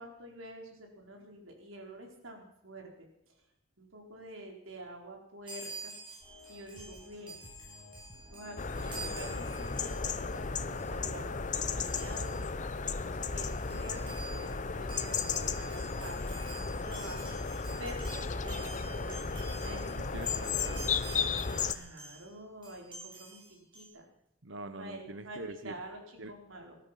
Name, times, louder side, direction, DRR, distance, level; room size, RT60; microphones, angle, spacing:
voice 1, 0.0-3.4 3.8-5.9 6.5-7.4 8.3-12.4 13.0-16.2 16.5-19.8 21.4-24.1 24.8-26.8, right 1 dB, 85° right, 1 dB, 4.4 m, -48 dB
Chime, 5.5-10.4 10.7-11.0 11.9-12.5 13.0-13.1 13.3-22.3 22.6-23.9, right 2 dB, 25° right, 7.2 m, -48 dB
sound 1, 6.2-20.9, left 1 dB, 10° left, 6.5 m, -56 dB
sound 2, 8.6-21.7, left 5 dB, 40° left, 0.8 m, -34 dB
voice 2, 19.7-21.3 24.4-25.8 26.2-26.3, right 2 dB, 65° right, 11 dB, 1.1 m, -44 dB
19.5 x 13.0 x 5.8 m, 0.78 s
head